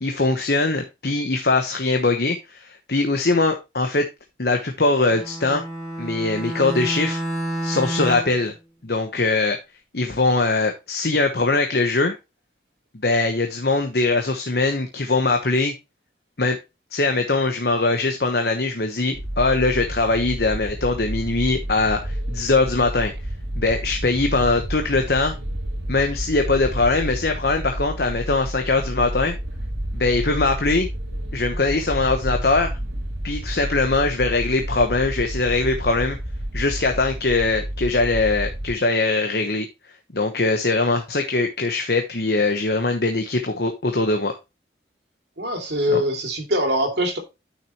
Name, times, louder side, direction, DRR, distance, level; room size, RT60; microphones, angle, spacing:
voice 1, 0.0-4.1 4.4-5.6 6.0-7.2 7.6-8.5 8.8-9.6 9.9-12.1 13.0-15.7 16.4-16.6 16.9-23.1 23.6-25.3 25.9-29.4 29.9-30.9 31.3-32.7 33.2-36.2 36.5-39.7 40.1-44.3 45.9-46.0, left 3 dB, 55° left, 1.0 m, -21 dB
Bowed string instrument, 5.0-8.4, right 1 dB, 15° left, 3.0 m, -29 dB
sound 1, 19.1-38.7, right 1 dB, 85° right, 2.5 m, -30 dB
voice 2, 45.4-47.2, equal, 65° right, 2.6 m, -23 dB
9.8 x 6.1 x 3.0 m
head